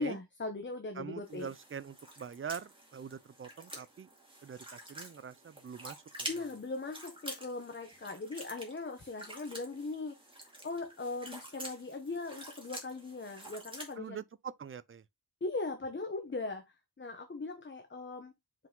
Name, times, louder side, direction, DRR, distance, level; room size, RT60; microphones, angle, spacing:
voice 1, 0.0-1.5 6.3-10.1 10.6-14.2 15.4-16.6 17.0-18.3, left 3 dB, 30° left, 0.9 m, -39 dB
voice 2, 1.0-4.1 4.4-6.4 14.0-15.0, right 7 dB, 35° right, 0.4 m, -44 dB
sound 1, 1.2-13.9, right 1 dB, 15° right, 2.3 m, -48 dB
5.7 x 4.8 x 3.8 m
wide cardioid pair, 155°, 39 cm